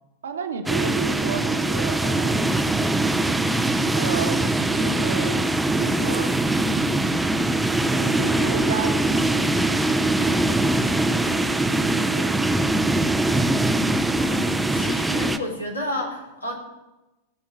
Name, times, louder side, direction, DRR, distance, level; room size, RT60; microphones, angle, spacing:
voice 1, 0.2-2.4 3.9-5.4 5.8-6.9 7.8-9.4 10.1-10.8 11.1-12.5, right 6 dB, 65° right, 5 dB, 1.5 m, -33 dB
sound 1, 0.7-15.4, right 2 dB, 5° right, 0.7 m, -22 dB
voice 2, 14.2-16.5, left 1 dB, 80° left, 0 dB, 3.1 m, -31 dB
16.0 x 5.8 x 8.9 m, 1.0 s
figure-of-eight pair, 90°, 0 cm